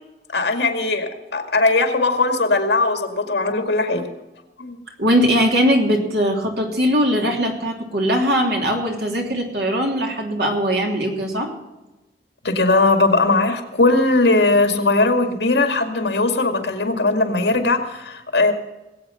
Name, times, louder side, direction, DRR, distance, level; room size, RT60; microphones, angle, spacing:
voice 1, 0.3-4.1 4.6-4.8 12.4-18.5, left 3 dB, 75° left, 6 dB, 2.1 m, -19 dB
voice 2, 5.0-11.5, equal, 65° right, 1 dB, 3.1 m, -20 dB
19.5 x 8.7 x 5.7 m, 1.0 s
head